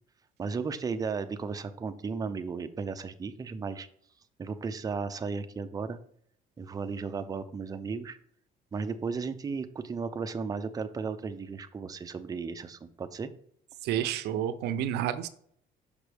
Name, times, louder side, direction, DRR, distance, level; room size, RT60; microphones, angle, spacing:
voice 1, 0.4-3.9 4.4-6.0 6.6-8.2 8.7-13.3, right 5 dB, 20° right, 9 dB, 0.5 m, -35 dB
voice 2, 13.8-15.3, right 10 dB, 85° right, 12 dB, 0.5 m, -30 dB
6.0 x 5.1 x 3.3 m, 0.64 s
cardioid pair, 110°, 17 cm